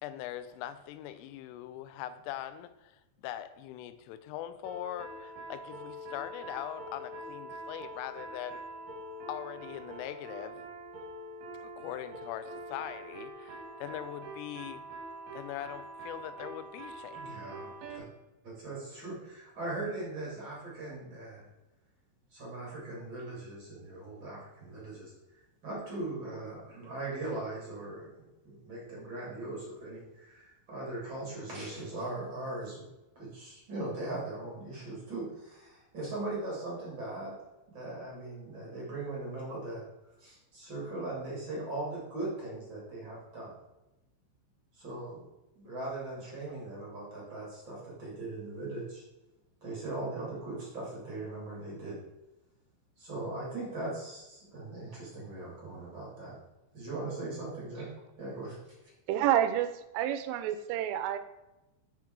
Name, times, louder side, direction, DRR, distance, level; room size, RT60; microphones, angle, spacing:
voice 1, 0.0-8.7 9.3-10.6 11.6-14.8 15.3-17.2, left 12 dB, 85° left, 12 dB, 3.1 m, -41 dB
sound 1, 4.6-18.0, right 1 dB, 65° right, 2.8 m, -44 dB
voice 2, 17.1-18.1 18.4-21.5 22.3-25.1 25.6-32.8 33.1-37.3 37.7-39.8 40.2-43.5 44.8-45.3 45.5-49.0 49.6-51.9 53.0-56.4 56.7-57.9 58.2-58.6 58.8-58.9, right 2 dB, 30° right, -5 dB, 2.3 m, -39 dB
voice 3, 59.1-61.2, right 11 dB, 85° right, 10 dB, 3.2 m, -29 dB
7.5 x 5.9 x 4.6 m, 0.98 s
omnidirectional pair, 5.7 m